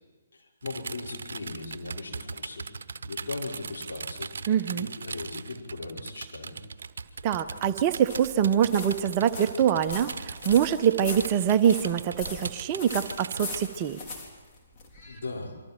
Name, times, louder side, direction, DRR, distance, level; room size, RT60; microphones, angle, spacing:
voice 1, 0.3-4.3 4.7-6.6 15.1-15.6, left 3 dB, 65° left, -2 dB, 5.3 m, -38 dB
sound 1, 0.6-13.6, right 5 dB, 60° right, 1.0 m, -39 dB
voice 2, 4.5-4.9 7.2-14.0, right 9 dB, 30° right, 10 dB, 0.9 m, -24 dB
sound 2, 7.0-15.2, left 3 dB, 30° left, 3.9 m, -42 dB
27.0 x 24.0 x 4.5 m, 1.3 s
figure-of-eight pair, 135°, 0 cm